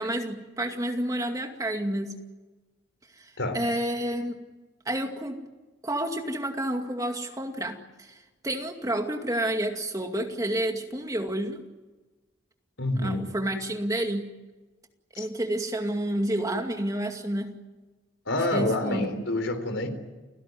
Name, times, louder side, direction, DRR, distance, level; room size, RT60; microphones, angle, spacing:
voice 1, 0.0-2.1 3.2-4.4 4.9-5.4 5.8-11.6 12.9-14.3 15.2-17.5 18.5-19.1, right 1 dB, 20° right, 4 dB, 2.3 m, -30 dB
voice 2, 12.8-13.2 15.1-15.3 18.3-19.9, left 1 dB, 80° left, 7 dB, 3.9 m, -27 dB
29.5 x 17.5 x 9.5 m, 1.2 s
head